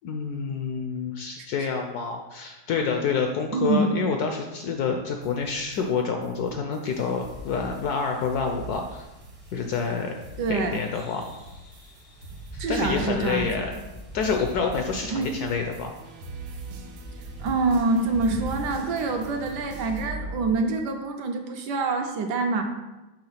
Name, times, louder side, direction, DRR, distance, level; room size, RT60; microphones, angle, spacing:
voice 1, 0.0-9.1 9.5-10.1 10.5-11.2 12.5-13.7 14.1-16.0, left 5 dB, 75° left, 4 dB, 0.9 m, -28 dB
voice 2, 3.5-3.9 10.4-10.8 12.6-13.7 15.1-15.3 17.4-22.6, right 3 dB, 70° right, 4 dB, 1.2 m, -26 dB
sound 1, 5.2-20.1, right 2 dB, 90° right, 1.5 m, -44 dB
Wind, 6.9-20.1, equal, 15° right, 0.4 m, -43 dB
sound 2, 10.9-13.8 14.4-20.5, left 1 dB, 90° left, 2.3 m, -45 dB
5.8 x 3.5 x 5.6 m, 1.1 s
omnidirectional pair, 2.1 m